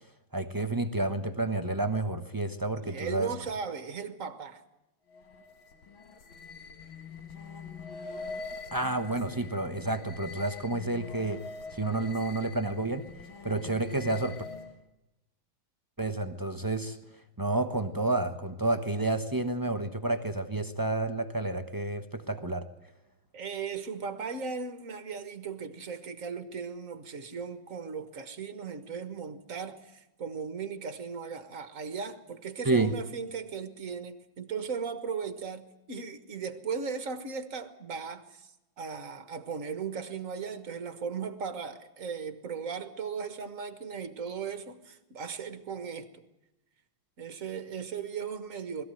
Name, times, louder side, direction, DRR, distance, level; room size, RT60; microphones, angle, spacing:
voice 1, 0.3-3.3 8.7-11.4 11.7-13.0 13.4-14.4 16.0-17.0 17.4-22.7 32.6-32.9, right 2 dB, 25° right, 0.4 m, -30 dB
voice 2, 2.8-4.6 23.3-46.2 47.2-48.8, right 6 dB, 40° right, 1.7 m, -37 dB
sound 1, 5.1-14.8, left 4 dB, 70° left, 2.3 m, -44 dB
21.0 x 15.0 x 9.2 m
omnidirectional pair, 2.3 m